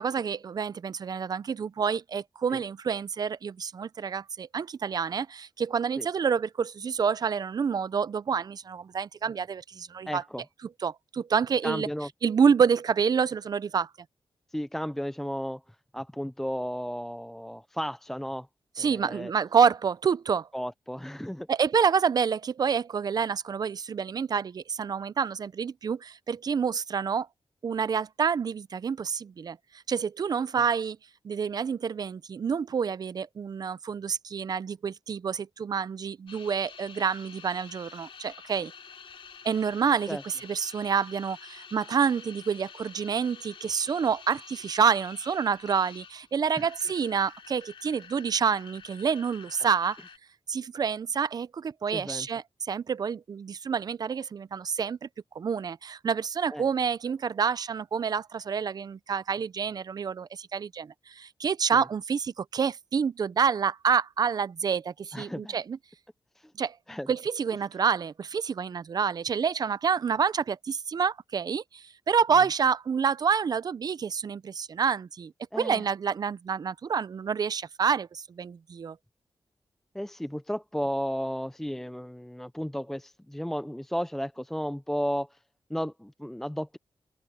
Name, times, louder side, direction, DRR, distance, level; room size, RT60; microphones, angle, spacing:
voice 1, 0.0-10.2 10.8-11.9 12.2-13.9 18.8-20.5 21.5-27.3 27.6-29.6 29.9-31.0 31.2-38.7 39.4-50.0 50.5-55.1 55.3-65.8 66.6-66.8 67.1-79.0, right 6 dB, 50° right, 0.5 m, -28 dB
voice 2, 10.1-10.4 11.6-12.1 14.5-18.5 18.8-19.3 20.5-21.5 40.1-40.2 46.6-46.7 51.9-52.3 56.5-56.6 61.7-61.9 65.1-65.6 66.4-66.5 66.9-67.1 75.5-75.9 79.9-85.4 85.7-86.8, equal, 5° left, 0.5 m, -34 dB
sound 1, 36.3-50.2, left 6 dB, 80° left, 3.1 m, -48 dB
open air
wide cardioid pair, 150°, 9 cm